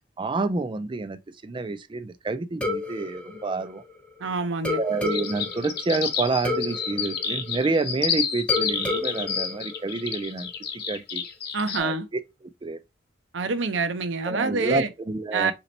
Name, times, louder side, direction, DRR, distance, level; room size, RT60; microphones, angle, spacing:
voice 1, 0.2-3.8 4.8-11.2 11.8-12.2 12.6-12.8 14.3-15.5, right 3 dB, 25° right, 0.4 m, -28 dB
sound 1, 2.6-4.2 4.6-8.0 8.5-10.4, left 2 dB, 5° left, 0.8 m, -32 dB
voice 2, 4.2-4.8 11.5-12.0 13.3-14.9 15.3-15.5, right 4 dB, 70° right, 0.7 m, -26 dB
sound 2, 5.1-11.8, left 7 dB, 55° left, 0.9 m, -29 dB
4.2 x 2.9 x 3.9 m
head